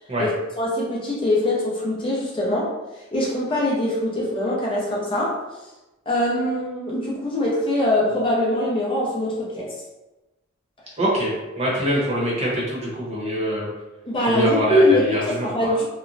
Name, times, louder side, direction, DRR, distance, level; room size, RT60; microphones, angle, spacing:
voice 1, 0.2-2.7 3.1-5.4 6.1-9.7 14.1-15.8, left 1 dB, 25° left, -5 dB, 0.5 m, -22 dB
voice 2, 11.0-13.7 14.3-15.7, equal, 30° right, -5 dB, 0.8 m, -24 dB
2.9 x 2.0 x 2.5 m, 1.1 s
head